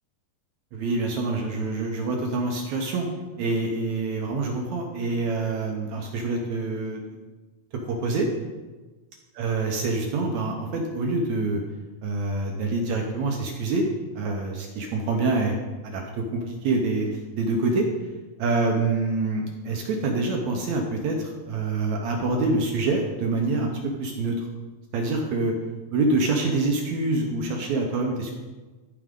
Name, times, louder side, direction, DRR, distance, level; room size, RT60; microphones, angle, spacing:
voice 1, 0.7-3.1 3.4-7.0 7.9-8.3 9.4-11.6 12.0-13.9 14.2-15.5 15.8-17.9 18.4-24.5 24.9-25.5 25.9-28.3, right 3 dB, 70° right, 2 dB, 1.9 m, -26 dB
14.5 x 4.8 x 3.7 m, 1.3 s
omnidirectional pair, 4.0 m